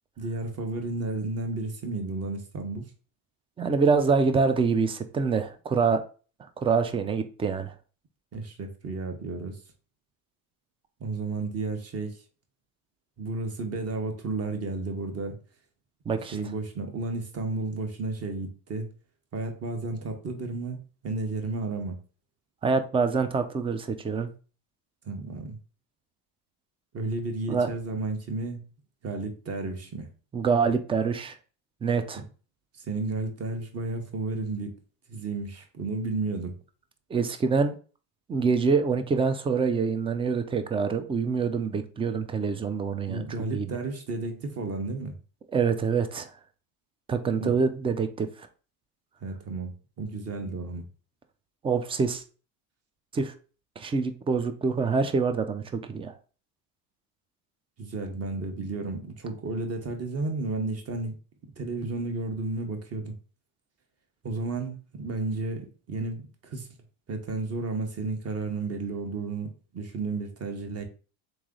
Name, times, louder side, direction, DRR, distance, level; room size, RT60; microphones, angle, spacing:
voice 1, 0.2-2.8 8.3-9.6 11.0-12.2 13.2-15.4 16.3-18.9 19.3-22.0 25.0-25.6 26.9-28.6 29.0-30.1 32.8-34.7 35.1-36.6 43.1-45.2 47.4-47.5 49.2-50.9 57.8-61.1 61.6-63.1 64.2-66.7 67.1-70.8, right 3 dB, 35° right, 1.1 m, -32 dB
voice 2, 3.6-6.0 6.6-7.7 16.1-16.4 22.6-24.3 27.5-27.7 30.3-31.4 31.8-32.2 37.1-37.7 38.3-43.3 43.5-43.7 45.5-46.3 47.1-48.3 51.6-52.2 53.1-53.3 53.8-56.1, right 5 dB, 15° right, 0.3 m, -25 dB
3.9 x 3.1 x 3.7 m
supercardioid pair, 110°, 45 cm